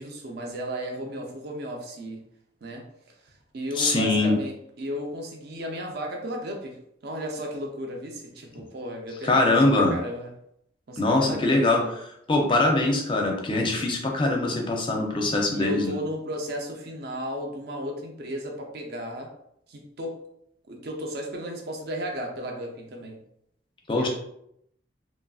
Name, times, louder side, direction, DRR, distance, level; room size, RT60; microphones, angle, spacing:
voice 1, 0.0-2.2 2.6-10.3 10.9-11.9 15.5-19.3 19.7-20.2 20.7-23.2 23.9-24.1, equal, 60° right, 2 dB, 0.5 m, -35 dB
voice 2, 3.8-4.3 9.2-10.0 11.0-11.8 12.3-15.9 23.9-24.1, left 2 dB, 25° left, 1 dB, 0.5 m, -22 dB
3.0 x 2.5 x 2.3 m, 0.75 s
head